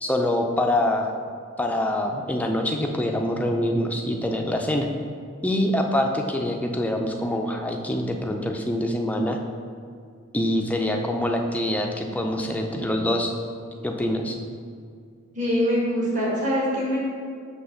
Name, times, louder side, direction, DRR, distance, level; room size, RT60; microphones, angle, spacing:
voice 1, 0.0-1.1 1.6-4.9 5.4-9.4 10.3-13.3 13.8-14.4, left 1 dB, 5° left, 2 dB, 0.4 m, -25 dB
voice 2, 15.3-17.0, equal, 35° right, -5 dB, 1.4 m, -23 dB
5.5 x 3.4 x 5.7 m, 2.2 s
head